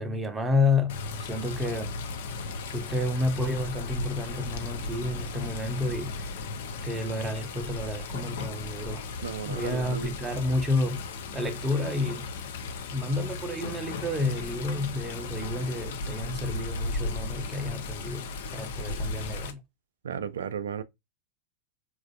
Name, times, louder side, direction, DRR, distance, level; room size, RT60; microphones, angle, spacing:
voice 1, 0.0-1.9 2.7-6.3 6.8-9.1 9.4-11.1 11.3-12.3 12.9-19.6, left 2 dB, 15° right, 0.5 m, -30 dB
Water, 0.9-19.5, left 3 dB, 55° left, 0.5 m, -36 dB
voice 2, 9.2-10.1 20.0-20.8, right 7 dB, 65° right, 0.3 m, -34 dB
3.2 x 2.4 x 2.3 m
figure-of-eight pair, 90°, 0 cm